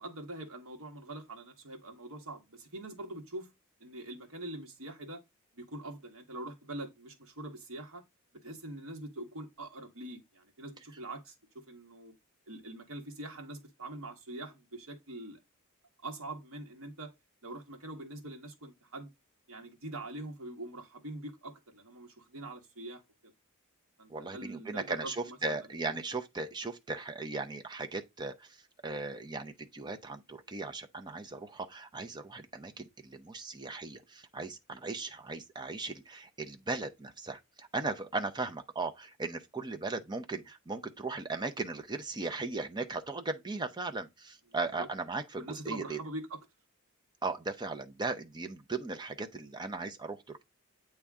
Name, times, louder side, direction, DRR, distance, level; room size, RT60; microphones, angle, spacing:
voice 1, 0.0-3.5 3.8-5.2 5.5-8.0 8.4-12.1 12.5-15.4 16.0-17.1 17.4-19.1 19.5-23.3 24.0-25.6 25.9-26.0 44.8-44.9 45.4-46.4, right 1 dB, 70° right, 1.5 m, -44 dB
voice 2, 24.1-46.0 47.2-50.4, right 3 dB, 20° right, 0.7 m, -37 dB
8.4 x 3.3 x 3.6 m
head